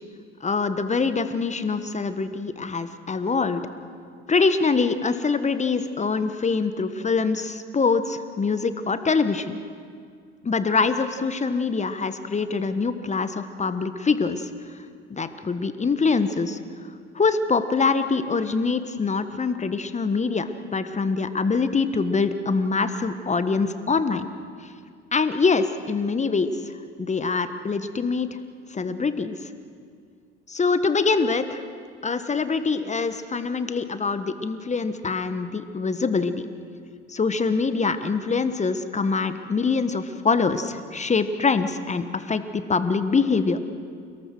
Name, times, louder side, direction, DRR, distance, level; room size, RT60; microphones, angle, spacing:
voice 1, 0.4-3.6 4.3-9.6 10.4-14.5 15.1-16.6 17.1-24.3 25.1-26.7 27.0-28.3 28.7-29.4 30.5-31.6 32.0-36.5 37.1-43.6, left 4 dB, 20° left, 10 dB, 1.4 m, -24 dB
29.5 x 18.5 x 6.3 m, 2.2 s
figure-of-eight pair, 65°, 33 cm